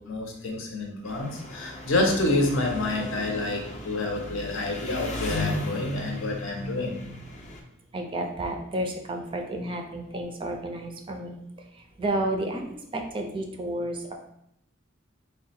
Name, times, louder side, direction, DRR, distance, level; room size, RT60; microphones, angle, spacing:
voice 1, 0.0-7.0, left 2 dB, 70° left, 1 dB, 0.7 m, -28 dB
Engine, 1.0-7.6, left 2 dB, 35° left, 0.5 m, -35 dB
voice 2, 7.9-11.4 12.0-12.7 12.9-14.1, right 1 dB, 25° right, 3 dB, 0.4 m, -31 dB
3.7 x 2.2 x 4.1 m, 0.77 s
head